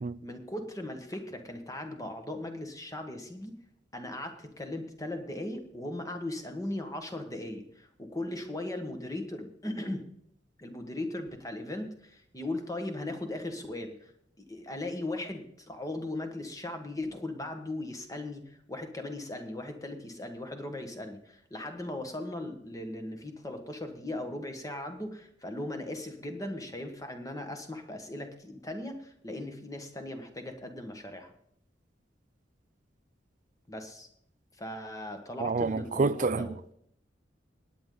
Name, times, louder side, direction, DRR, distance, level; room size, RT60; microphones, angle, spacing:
voice 1, 0.2-3.6 3.9-10.0 10.6-14.1 14.4-31.3 33.7-34.1 34.6-36.6, left 1 dB, 20° left, 1.5 m, -38 dB
voice 2, 35.4-36.7, right 4 dB, 45° right, 0.4 m, -28 dB
18.0 x 9.4 x 3.9 m
head